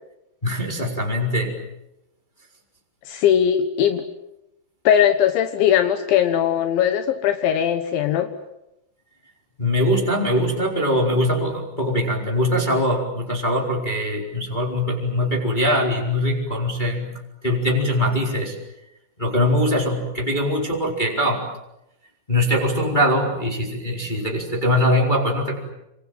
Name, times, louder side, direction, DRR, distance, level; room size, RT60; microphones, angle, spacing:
voice 1, 0.4-1.6 9.6-17.1 17.4-18.6 19.2-21.4 22.3-25.7, equal, 10° left, 0 dB, 3.8 m, -22 dB
voice 2, 3.1-4.0 4.9-8.3, left 9 dB, 75° left, 8 dB, 3.5 m, -19 dB
28.0 x 26.5 x 7.7 m, 0.87 s
omnidirectional pair, 5.5 m